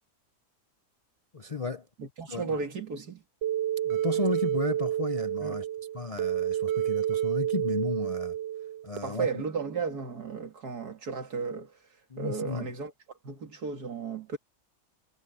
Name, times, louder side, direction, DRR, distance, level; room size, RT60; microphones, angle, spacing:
voice 1, 1.3-1.9 2.3-2.6 3.8-5.7 5.9-8.3 8.8-9.3 12.1-12.7, left 4 dB, 40° left, 0.5 m, -33 dB
voice 2, 2.0-3.2 5.4-5.6 9.0-11.8 12.2-12.9 13.2-14.4, right 5 dB, 85° right, 2.8 m, -34 dB
sound 1, 3.4-9.0, right 11 dB, 70° right, 0.6 m, -29 dB
omnidirectional pair, 1.6 m